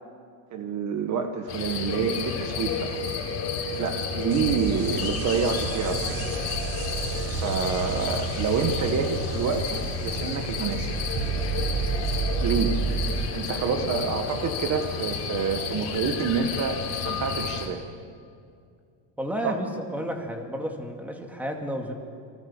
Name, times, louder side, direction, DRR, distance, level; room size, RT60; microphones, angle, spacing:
voice 1, 0.5-3.0 3.8-6.3 7.4-11.0 12.4-12.8 13.3-17.8 19.4-19.6, right 6 dB, 35° right, 6 dB, 1.5 m, -28 dB
sound 1, 1.5-17.7, left 6 dB, 35° left, 4.3 m, -31 dB
sound 2, 4.3-13.3, right 6 dB, 60° right, 1.4 m, -31 dB
voice 2, 19.2-21.9, equal, 5° right, 3 dB, 2.3 m, -32 dB
29.0 x 24.5 x 7.4 m, 2.4 s
cardioid pair, 170°, 47 cm